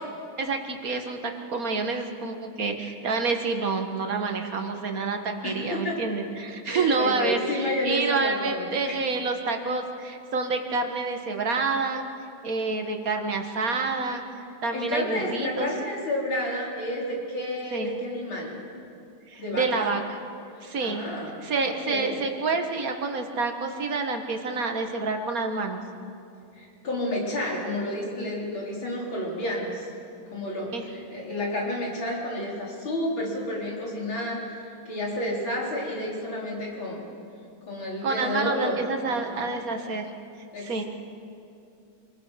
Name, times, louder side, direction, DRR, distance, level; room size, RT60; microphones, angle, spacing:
voice 1, 0.4-12.0 12.4-14.2 14.6-15.7 17.7-17.9 19.3-20.0 20.6-21.0 21.4-25.8 30.7-30.8 38.0-40.1 40.6-40.8, right 4 dB, 45° right, 4 dB, 2.0 m, -28 dB
voice 2, 5.4-6.0 6.6-9.0 14.7-18.6 19.4-20.0 20.5-22.2 26.6-29.9 30.3-37.0 37.7-38.8 39.1-39.4 40.5-40.9, left 1 dB, 75° left, -3 dB, 5.3 m, -31 dB
27.5 x 20.5 x 6.0 m, 2.5 s
omnidirectional pair, 2.2 m